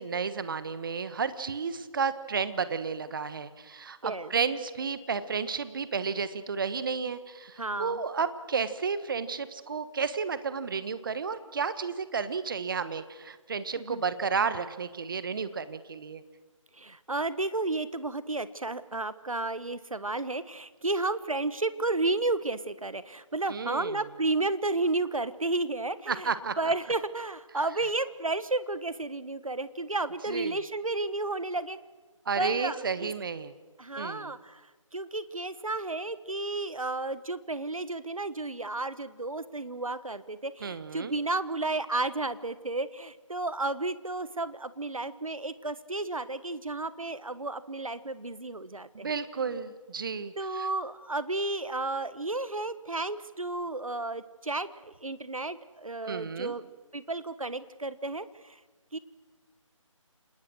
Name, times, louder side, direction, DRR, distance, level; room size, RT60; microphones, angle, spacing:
voice 1, 0.0-16.2 23.5-24.0 26.1-26.5 30.3-30.6 32.3-33.5 34.0-34.3 40.6-41.1 48.9-50.7 56.1-56.6, right 5 dB, 40° right, 13 dB, 1.3 m, -32 dB
voice 2, 7.6-8.0 13.8-14.0 16.8-31.8 32.4-33.1 33.8-34.7 34.9-49.1 50.4-56.6 56.9-58.6 58.9-59.0, right 2 dB, 85° right, 15 dB, 1.4 m, -32 dB
28.5 x 19.5 x 6.3 m, 1.3 s
figure-of-eight pair, 155°, 17 cm